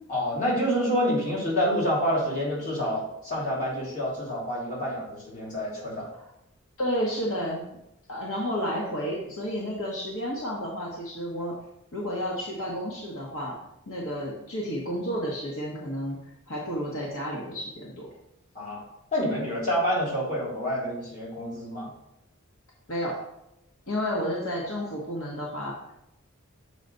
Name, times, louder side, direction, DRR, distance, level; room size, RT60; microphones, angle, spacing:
voice 1, 0.1-6.1 18.5-18.8 19.1-21.9, equal, 40° left, -5 dB, 2.7 m, -28 dB
voice 2, 6.8-7.7 8.1-11.6 11.9-13.6 13.9-16.2 16.5-18.1 22.9-23.3 23.9-25.8, equal, 75° left, -3 dB, 1.3 m, -31 dB
6.6 x 5.0 x 4.0 m, 0.84 s
head